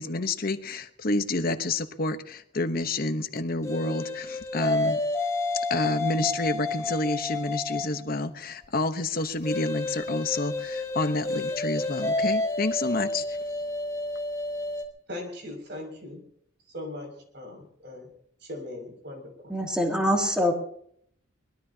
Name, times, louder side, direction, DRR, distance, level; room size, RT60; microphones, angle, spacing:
voice 1, 0.0-5.0 5.5-13.4, left 2 dB, 50° left, 8 dB, 1.0 m, -29 dB
sound 1, 3.6-8.0 9.4-14.8, left 2 dB, 15° left, 2.0 m, -30 dB
voice 2, 15.1-16.2 16.7-18.1 18.4-19.5, left 1 dB, 60° right, 3 dB, 6.3 m, -39 dB
voice 3, 19.5-20.5, equal, 5° right, 0 dB, 2.7 m, -24 dB
23.0 x 20.0 x 2.9 m, 0.65 s
head